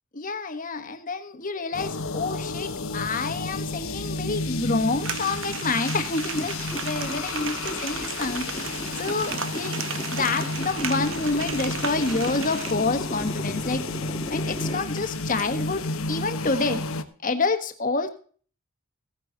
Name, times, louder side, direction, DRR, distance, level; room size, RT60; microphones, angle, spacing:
voice 1, 0.1-8.4 9.0-9.8 10.1-13.8 14.3-15.8 16.1-16.8 17.2-18.1, left 3 dB, 40° left, 7 dB, 1.4 m, -28 dB
sound 1, 1.7-17.0, left 3 dB, 75° left, 1.1 m, -32 dB
sound 2, 5.0-12.7, right 7 dB, 65° right, 1.1 m, -35 dB
sound 3, 6.0-15.4, left 1 dB, 20° left, 1.4 m, -38 dB
16.0 x 9.7 x 4.0 m, 0.43 s
head